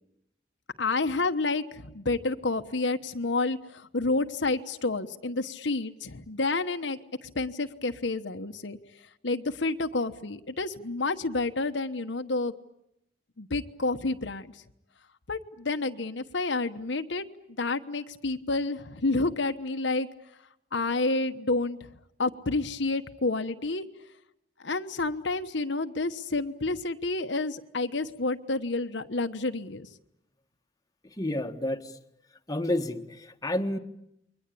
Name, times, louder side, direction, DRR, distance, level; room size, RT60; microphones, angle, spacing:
voice 1, 0.8-8.8 9.2-12.5 13.4-14.6 15.3-17.2 17.6-20.1 20.7-21.8 22.2-23.8 24.6-29.9, left 3 dB, 75° left, 7 dB, 1.2 m, -29 dB
voice 2, 31.2-31.9 32.5-33.8, left 1 dB, 20° left, 5 dB, 1.4 m, -30 dB
29.5 x 23.0 x 8.6 m, 0.80 s
head